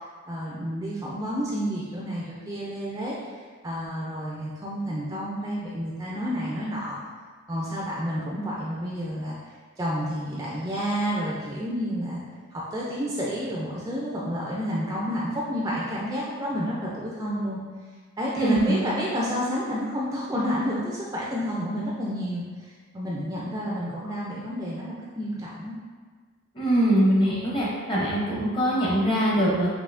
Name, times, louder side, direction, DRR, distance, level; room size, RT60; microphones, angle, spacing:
voice 1, 0.3-3.3 3.6-7.0 7.5-9.4 9.8-12.2 12.5-17.6 18.2-25.8, equal, 15° right, -5 dB, 0.4 m, -30 dB
voice 2, 18.3-18.8 26.5-29.7, equal, 25° left, -6 dB, 0.8 m, -22 dB
5.4 x 2.7 x 2.6 m, 1.5 s
head